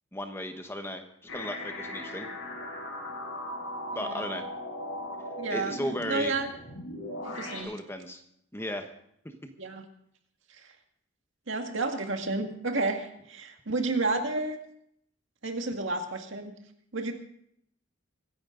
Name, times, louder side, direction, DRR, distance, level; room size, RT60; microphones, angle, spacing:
voice 1, 0.1-1.0 1.3-2.3 3.9-4.4 5.5-6.3 7.6-8.2 8.5-8.9 9.2-9.4, left 1 dB, 10° left, 5 dB, 1.1 m, -35 dB
sound 1, 1.3-7.6, left 1 dB, 85° left, 7.1 m, -38 dB
voice 2, 3.9-4.3 5.4-5.7 6.1-6.5 7.2-7.7 9.6-9.8 10.5-10.7 11.5-14.6 15.4-16.6 16.9-17.1, right 3 dB, 65° right, 4 dB, 2.0 m, -31 dB
25.0 x 10.5 x 3.9 m, 0.72 s
head